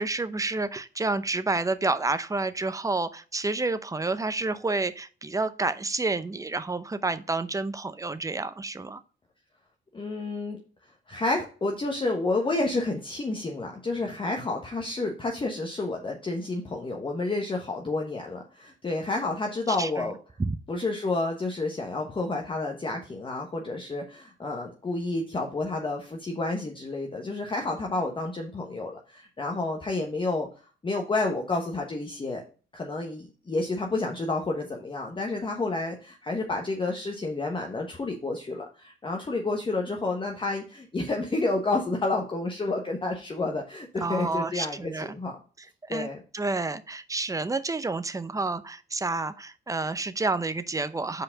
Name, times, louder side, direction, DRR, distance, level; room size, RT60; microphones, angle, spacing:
voice 1, 0.0-9.0 19.8-20.1 20.4-20.5 44.0-45.2 45.8-51.2, right 3 dB, 15° right, 12 dB, 0.6 m, -29 dB
voice 2, 9.9-10.6 11.1-20.2 20.7-30.5 30.8-32.4 32.7-45.4 45.9-46.2, left 2 dB, 25° left, 1 dB, 1.0 m, -30 dB
5.2 x 4.3 x 5.6 m, 0.37 s
cardioid pair, 90°, 20 cm